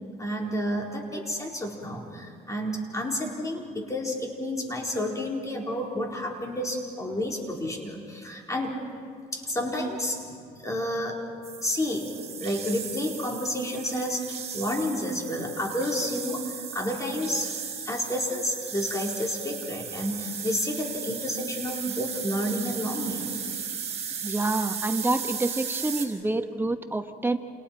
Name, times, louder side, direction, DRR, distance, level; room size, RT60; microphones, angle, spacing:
voice 1, 0.2-8.8 9.3-10.2 10.6-11.2 11.6-17.5 17.9-23.4, equal, 20° left, -1 dB, 4.1 m, -30 dB
sound 1, 11.4-26.1, right 7 dB, 40° right, 4.6 m, -36 dB
voice 2, 24.2-27.4, right 2 dB, 10° right, 7 dB, 1.1 m, -27 dB
29.5 x 28.5 x 4.5 m, 2.1 s
cardioid pair, 110°, 17 cm